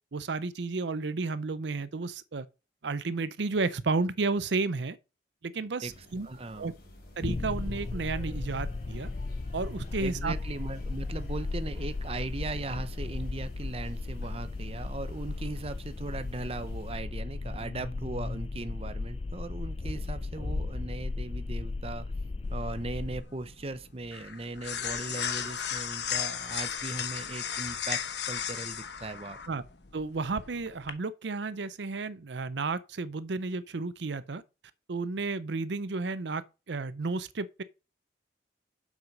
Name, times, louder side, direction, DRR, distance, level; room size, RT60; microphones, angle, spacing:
voice 1, 0.1-2.5 2.8-5.0 5.4-6.3 6.6-6.7 7.2-9.1 9.5-10.3 29.5-29.6 29.9-34.4 34.9-37.6, right 3 dB, 75° right, 0.6 m, -32 dB
sound 1, 5.8-16.9, left 1 dB, 50° left, 3.9 m, -53 dB
voice 2, 6.2-6.7 10.0-22.1 22.5-28.0 28.3-29.4, right 2 dB, 30° right, 0.7 m, -38 dB
sound 2, 7.2-23.2, left 3 dB, 30° left, 0.3 m, -35 dB
sound 3, 22.4-30.9, left 8 dB, 70° left, 1.1 m, -36 dB
7.4 x 6.2 x 5.3 m
head